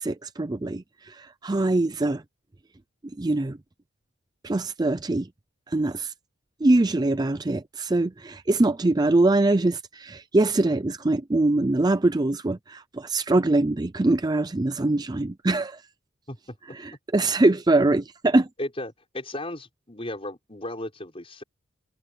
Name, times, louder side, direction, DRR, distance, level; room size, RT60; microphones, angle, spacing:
voice 1, 0.0-2.2 3.2-3.6 4.4-5.3 5.7-6.1 6.6-15.8 16.7-18.5, right 2 dB, 20° right, 0.4 m, -23 dB
voice 2, 18.6-21.4, left 1 dB, 25° left, 5.5 m, -35 dB
head